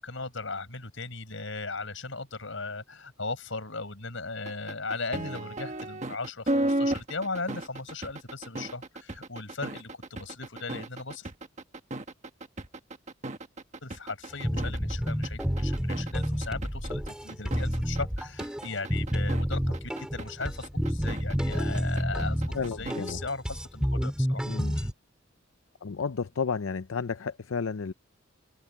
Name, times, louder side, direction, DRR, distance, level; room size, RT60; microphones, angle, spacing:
voice 1, 0.0-11.3 13.8-22.4 22.8-24.5 24.7-24.9, left 3 dB, 70° left, 5.8 m, -37 dB
sound 1, 4.5-23.1, right 1 dB, 35° right, 1.3 m, -34 dB
sound 2, 14.4-24.9, equal, 5° right, 2.3 m, -30 dB
voice 2, 22.5-23.2 24.4-24.8 25.8-27.9, left 5 dB, 85° left, 0.6 m, -32 dB
head